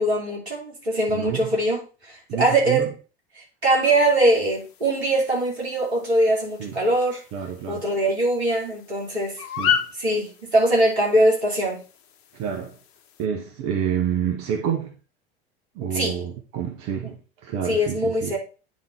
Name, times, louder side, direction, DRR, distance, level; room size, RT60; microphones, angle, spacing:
voice 1, 0.0-1.8 2.1-2.9 3.6-7.2 7.7-9.4 10.0-11.8 15.9-16.2 17.7-18.4, right 1 dB, 80° right, 3.1 m, -22 dB
voice 2, 1.1-1.5 2.3-2.9 6.6-6.8 7.3-7.8 9.4-9.8 12.3-12.8 13.2-15.0 15.7-18.4, right 8 dB, 45° right, 1.2 m, -28 dB
sound 1, 3.8-13.3, left 9 dB, 45° left, 1.0 m, -34 dB
9.4 x 4.0 x 4.3 m
figure-of-eight pair, 75°, 32 cm